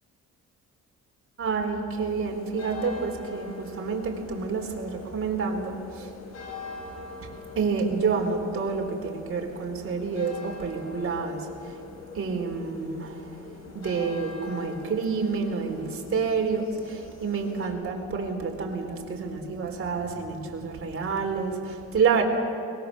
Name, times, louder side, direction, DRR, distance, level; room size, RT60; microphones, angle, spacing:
voice 1, 1.4-6.1 7.6-11.5 12.1-13.3 13.7-22.2, right 5 dB, 45° right, 1 dB, 4.0 m, -28 dB
sound 1, 2.0-17.7, left 4 dB, 60° left, 4.8 m, -43 dB
22.5 x 20.5 x 6.9 m, 2.5 s
cardioid pair, 90°, 30 cm